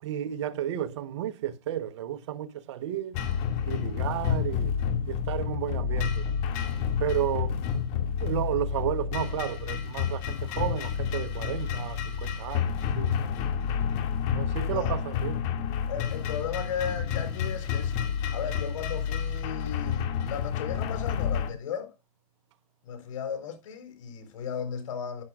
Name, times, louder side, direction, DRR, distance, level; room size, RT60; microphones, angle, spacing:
voice 1, 0.0-3.2 3.7-4.8 5.1-6.3 7.0-7.6 8.2-13.1 14.3-15.5, right 11 dB, 50° right, 1.1 m, -32 dB
sound 1, 3.1-21.5, left 7 dB, 35° left, 2.3 m, -29 dB
voice 2, 6.5-6.8 13.2-13.4 14.6-14.9 15.9-17.9 18.3-21.9 22.8-25.2, left 7 dB, 60° left, 4.2 m, -36 dB
11.0 x 10.5 x 2.5 m
hypercardioid pair, 140°, 19 cm